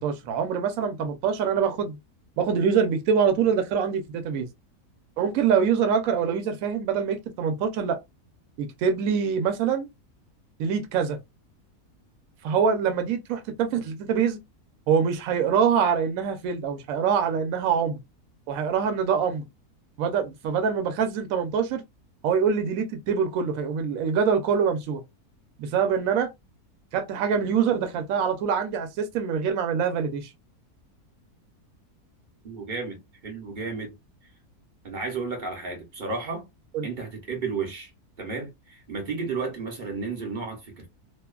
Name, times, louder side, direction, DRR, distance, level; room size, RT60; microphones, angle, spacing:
voice 1, 0.0-2.0 2.4-4.5 5.2-8.0 8.6-9.9 10.6-11.2 12.4-14.4 14.9-18.0 18.5-19.5 20.0-21.8 22.2-25.0 25.6-26.3 26.9-30.3 36.7-36.9, right 7 dB, 70° right, 1.0 m, -24 dB
voice 2, 32.4-33.9 34.8-36.5 36.8-37.9 38.2-40.9, right 4 dB, 45° right, 0.6 m, -33 dB
2.7 x 2.2 x 2.3 m
omnidirectional pair, 1.7 m